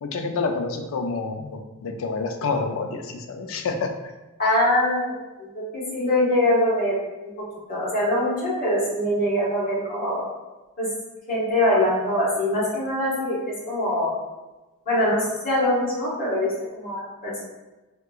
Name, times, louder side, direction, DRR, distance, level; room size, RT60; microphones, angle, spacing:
voice 1, 0.0-3.9, left 4 dB, 65° left, 5 dB, 0.4 m, -28 dB
voice 2, 4.4-7.0 7.4-10.2 10.8-10.9 11.3-14.2 14.8-17.4, left 1 dB, 40° left, -7 dB, 1.4 m, -23 dB
3.5 x 2.8 x 2.3 m, 1.1 s
head